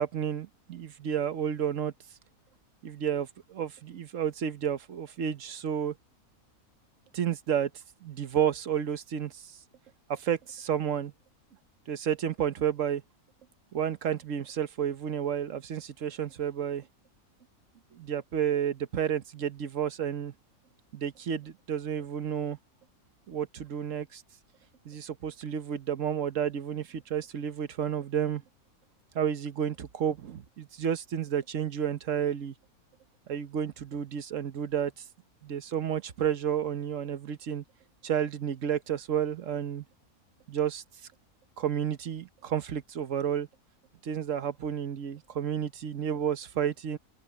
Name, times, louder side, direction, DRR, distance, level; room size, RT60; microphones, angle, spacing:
voice 1, 0.0-1.9 2.8-6.0 7.1-7.7 8.0-9.6 10.1-11.1 11.9-13.0 13.7-16.9 17.9-20.3 20.9-22.6 23.3-24.2 24.8-28.4 29.1-32.5 33.3-35.0 35.4-37.6 38.0-39.8 40.5-40.8 41.6-43.5 44.0-47.0, right 9 dB, 60° right, 1.3 m, -31 dB
omnidirectional pair, 1.6 m